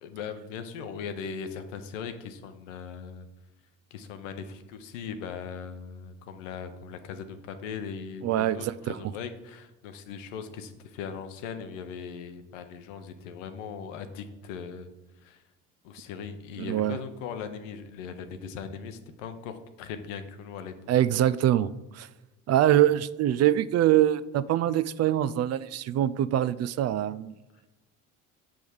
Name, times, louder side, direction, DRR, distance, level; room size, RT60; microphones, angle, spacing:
voice 1, 0.0-3.3 3.9-14.9 15.2-15.4 15.8-20.7, left 6 dB, 85° left, 8 dB, 0.8 m, -39 dB
voice 2, 8.2-9.0 16.6-17.0 20.9-21.7 21.9-22.1 22.5-27.3, right 12 dB, 45° right, 17 dB, 0.4 m, -24 dB
7.0 x 3.5 x 6.3 m, 1.1 s
hypercardioid pair, 65°, 37 cm